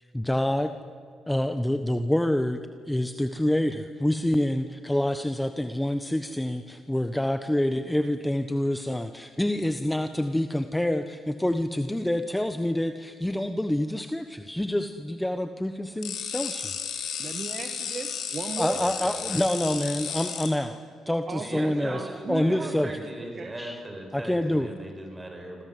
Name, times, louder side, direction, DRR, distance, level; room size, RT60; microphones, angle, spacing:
voice 1, 0.1-0.7 1.3-16.7 18.6-20.8 21.1-22.0 22.3-22.9 23.6-23.8 24.1-24.7, left 1 dB, 5° left, 8 dB, 1.2 m, -27 dB
sound 1, 16.0-20.5, left 7 dB, 75° left, 5.4 m, -33 dB
voice 2, 17.2-19.1 21.3-23.0 23.3-23.5, right 4 dB, 45° right, 6 dB, 1.8 m, -36 dB
voice 3, 18.7-19.7 21.4-25.6, right 1 dB, 15° right, 3 dB, 7.7 m, -39 dB
28.0 x 26.5 x 7.9 m, 2.1 s
cardioid pair, 90°, 0 cm